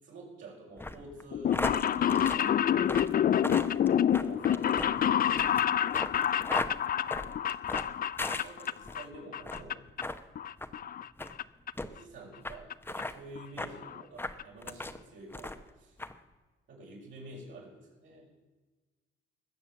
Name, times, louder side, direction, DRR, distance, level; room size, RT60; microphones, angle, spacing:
voice 1, 0.0-2.8 4.2-5.2 6.6-7.1 8.4-10.0 11.9-16.0 16.7-18.3, right 2 dB, 70° right, -3 dB, 6.1 m, -49 dB
sound 1, 0.8-9.0 9.4-9.7 10.0-10.2 10.6-10.7 11.2-11.3 11.8-11.9 12.4-12.6 12.8-13.1 13.6-13.7 14.2-15.0 15.3-15.7 16.0-16.1, left 2 dB, 10° left, 0.9 m, -37 dB
sound 2, 1.3-9.1 9.3-10.0 10.4-11.4 11.7-11.8 12.7-12.8 13.0-13.1 13.4-13.5 13.7-14.0 14.4-14.5 14.7-14.8, left 9 dB, 45° left, 0.5 m, -28 dB
20.0 x 7.0 x 7.4 m, 1.3 s
cardioid pair, 90°, 20 cm